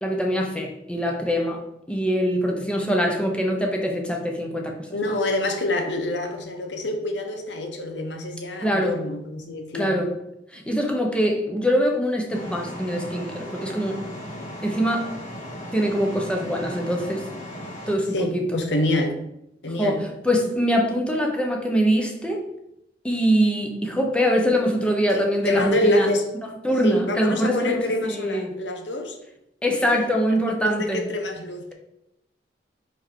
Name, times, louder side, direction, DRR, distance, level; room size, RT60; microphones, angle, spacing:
voice 1, 0.0-1.6 1.9-4.8 5.0-5.1 8.6-9.0 9.7-10.2 10.5-14.0 14.6-15.1 15.7-17.3 17.9-18.4 19.7-22.4 23.0-26.1 26.6-28.5 29.6-31.0, equal, 5° left, 1 dB, 0.9 m, -23 dB
voice 2, 4.9-10.0 18.1-19.3 19.6-20.0 25.1-26.2 26.8-29.2 29.8-29.9 30.6-31.7, left 1 dB, 85° left, 4 dB, 1.0 m, -26 dB
sound 1, 12.3-17.9, left 1 dB, 45° left, 1.4 m, -37 dB
4.6 x 4.6 x 4.5 m, 0.84 s
head